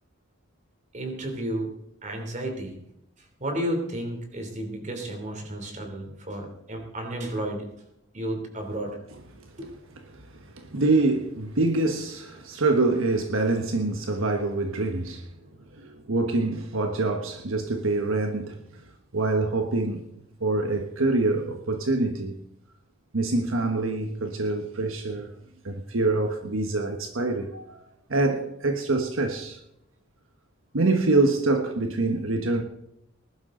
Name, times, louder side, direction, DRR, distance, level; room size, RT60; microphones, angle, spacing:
voice 1, 0.9-1.7 2.0-2.7 3.4-7.7 8.1-9.0 9.6-9.7 15.4-15.5, right 1 dB, 35° right, 3.2 m, -32 dB
voice 2, 10.1-15.3 15.7-18.8 19.1-20.1 20.4-22.4 23.1-25.3 25.6-27.8 28.1-29.6 30.7-32.6, right 2 dB, 75° right, 1.3 m, -25 dB
20.0 x 12.0 x 3.9 m
head